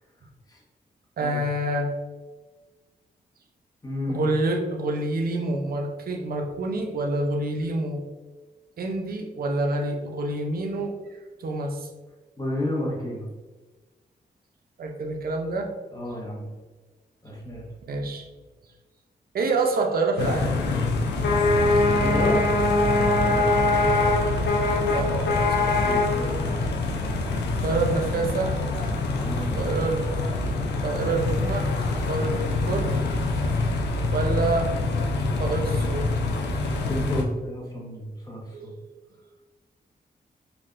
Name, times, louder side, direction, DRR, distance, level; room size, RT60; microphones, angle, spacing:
voice 1, 1.2-1.9 4.1-8.0 8.8-10.9 11.4-11.9 14.8-15.7 17.9-18.2 19.3-20.5 24.9-25.3 27.6-28.6 29.6-30.1 30.6-31.7 32.1-32.9 34.1-34.7 35.3-36.1 38.5-38.9, right 2 dB, 60° right, 3 dB, 0.5 m, -27 dB
voice 2, 3.8-4.2 12.4-13.3 15.9-16.5 17.2-17.6 22.0-22.4 23.3-23.9 25.7-26.8 29.1-29.8 36.7-38.7, left 1 dB, 20° left, -3 dB, 1.0 m, -32 dB
sound 1, 20.2-37.2, left 2 dB, 90° left, 0.4 m, -24 dB
3.4 x 2.6 x 2.5 m, 1.2 s
cardioid pair, 75°, 17 cm